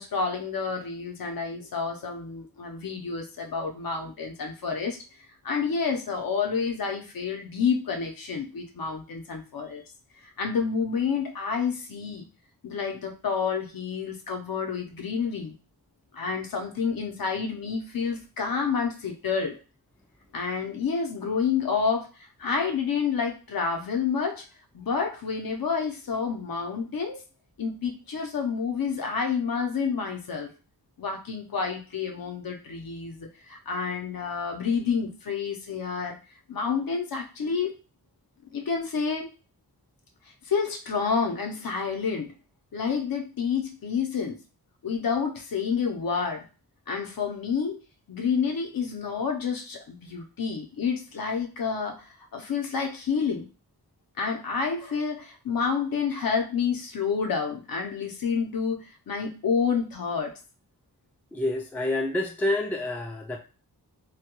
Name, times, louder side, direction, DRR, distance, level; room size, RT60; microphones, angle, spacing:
voice 1, 0.0-5.0 5.4-9.8 10.4-12.3 12.6-15.5 16.1-19.5 20.3-22.1 22.4-24.4 24.7-27.2 27.6-30.5 31.0-36.2 36.5-37.7 38.5-39.3 40.4-42.3 42.7-44.4 44.8-46.4 46.9-47.8 48.1-52.0 52.3-53.5 54.2-60.3, left 5 dB, 65° left, 2 dB, 0.7 m, -29 dB
voice 2, 61.3-63.4, left 1 dB, 5° left, 2 dB, 0.3 m, -28 dB
2.2 x 2.2 x 2.9 m, 0.33 s
wide cardioid pair, 120°, 38 cm